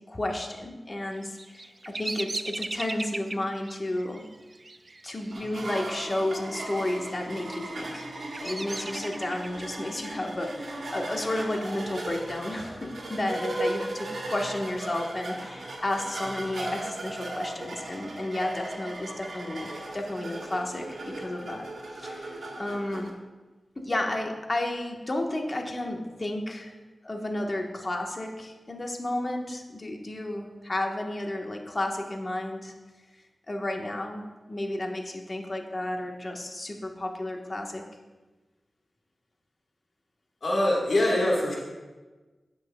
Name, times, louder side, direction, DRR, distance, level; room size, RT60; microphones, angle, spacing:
voice 1, 0.1-4.2 5.0-8.0 8.4-21.7 21.9-23.1 23.7-26.7 27.0-32.7 33.5-37.8, left 1 dB, 45° left, 2 dB, 1.4 m, -32 dB
Bird vocalization bird call bird song, 1.2-6.2 6.5-7.1 7.6-9.6, right 2 dB, 40° right, 0.4 m, -38 dB
sound 1, 5.3-23.1, right 1 dB, 75° right, 1.7 m, -37 dB
voice 2, 40.4-41.5, left 1 dB, 75° left, -4 dB, 1.8 m, -23 dB
16.0 x 6.1 x 2.4 m, 1.2 s
cardioid pair, 40°, 0 cm